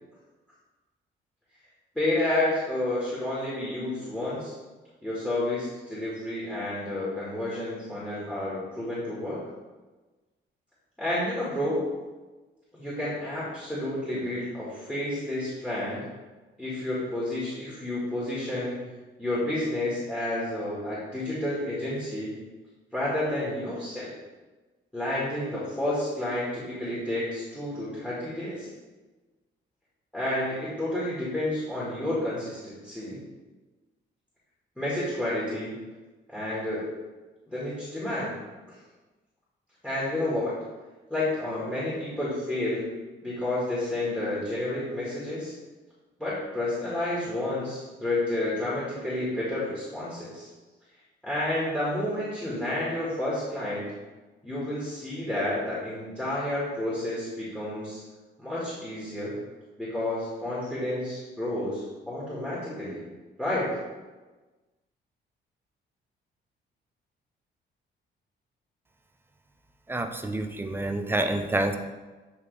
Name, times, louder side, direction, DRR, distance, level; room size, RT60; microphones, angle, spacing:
voice 1, 2.0-4.5 5.0-9.4 11.0-11.8 12.7-16.0 16.6-18.8 19.2-22.3 22.9-24.1 24.9-28.7 30.1-33.2 34.8-35.7 36.3-36.9 37.5-38.3 38.7-38.8 39.8-40.5 41.1-42.9 43.2-45.5 46.2-50.5 51.2-53.9 54.4-58.0 58.4-59.3 59.8-63.0 63.4-63.7, left 1 dB, 5° left, -8 dB, 2.0 m, -30 dB
voice 2, 69.9-71.7, right 1 dB, 10° right, 6 dB, 0.6 m, -28 dB
8.8 x 3.2 x 3.4 m, 1.2 s
cardioid pair, 90°, 20 cm